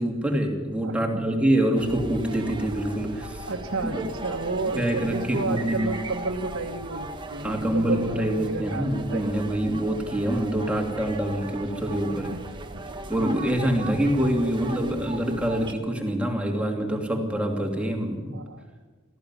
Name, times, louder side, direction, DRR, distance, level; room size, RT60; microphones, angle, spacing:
voice 1, 0.0-3.5 3.8-4.0 4.7-6.0 7.4-12.4 13.1-18.3, right 1 dB, 5° right, 1 dB, 2.7 m, -25 dB
voice 2, 0.8-1.2 3.5-9.4 12.1-12.4 12.7-12.8 14.0-15.1 18.3-18.6, right 3 dB, 85° right, -3 dB, 1.7 m, -32 dB
sound 1, 1.7-15.7, right 2 dB, 25° right, 1.4 m, -38 dB
18.5 x 14.5 x 9.8 m, 1.3 s
head